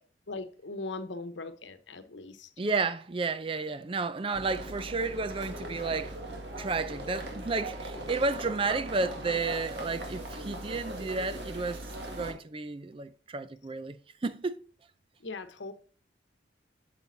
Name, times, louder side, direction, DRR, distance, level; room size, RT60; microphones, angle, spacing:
voice 1, 0.3-2.5 15.2-15.7, left 3 dB, 80° left, 1.0 m, -39 dB
voice 2, 2.6-6.2 6.6-14.0 14.2-14.6, right 3 dB, 30° right, 0.4 m, -32 dB
sound 1, 4.3-12.3, right 1 dB, 65° right, 2.0 m, -39 dB
8.4 x 7.0 x 2.7 m
head